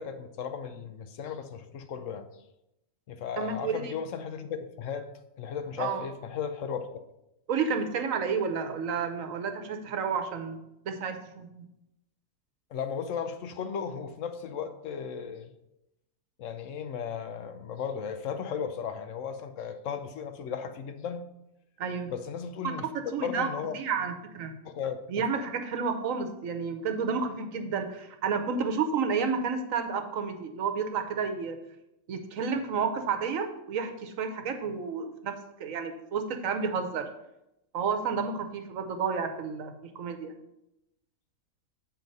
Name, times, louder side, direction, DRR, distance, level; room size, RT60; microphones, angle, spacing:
voice 1, 0.0-2.3 3.1-5.1 5.4-7.0 12.7-15.5 16.4-21.2 22.1-23.8 24.6-25.3, left 7 dB, 70° left, 9 dB, 0.9 m, -35 dB
voice 2, 3.4-4.0 5.8-6.0 7.5-10.6 10.9-11.6 21.8-22.1 22.6-23.5 23.7-24.5 25.1-31.6 32.1-35.3 35.6-37.1 37.7-40.3, right 5 dB, 70° right, 7 dB, 1.1 m, -31 dB
7.8 x 4.4 x 5.3 m, 0.87 s
omnidirectional pair, 1.5 m